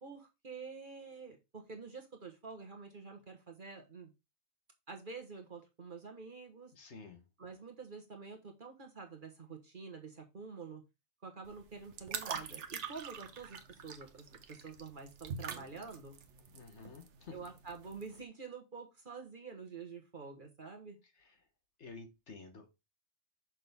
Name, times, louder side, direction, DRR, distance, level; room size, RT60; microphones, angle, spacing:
voice 1, 0.0-4.1 4.9-6.7 7.4-10.8 11.2-16.2 17.3-21.0, right 5 dB, 40° right, 3 dB, 1.4 m, -48 dB
voice 2, 6.7-7.2 16.5-17.5 21.8-22.7, left 4 dB, 55° left, 6 dB, 1.5 m, -51 dB
sound 1, 11.5-18.2, right 6 dB, 60° right, 1.1 m, -45 dB
6.4 x 5.8 x 3.5 m, 0.24 s
omnidirectional pair, 1.4 m